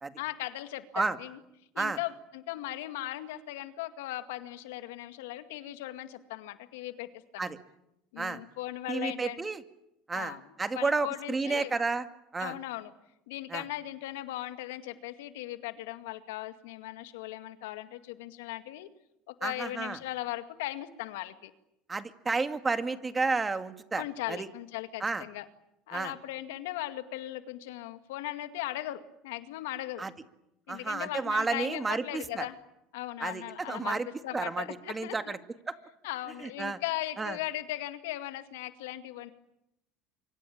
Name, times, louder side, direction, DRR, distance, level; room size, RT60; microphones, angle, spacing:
voice 1, 0.2-1.4 1.7-7.5 8.1-9.4 10.1-10.5 10.7-11.8 12.4-12.9 13.3-18.9 19.3-21.5 24.0-25.5 25.9-30.0 30.7-32.6 32.9-35.4 36.0-39.3, left 15 dB, 85° left, 10 dB, 2.1 m, -38 dB
voice 2, 8.9-9.6 10.1-12.1 12.3-12.5 13.5-13.6 19.4-20.0 21.9-24.5 25.0-25.2 25.9-26.1 30.0-30.1 30.7-32.5 33.2-34.1 34.3-35.4 35.7-35.8 36.4-36.8 37.2-37.4, right 4 dB, 20° right, 9 dB, 2.2 m, -31 dB
25.0 x 25.0 x 8.7 m, 0.83 s
supercardioid pair, 105°, 0 cm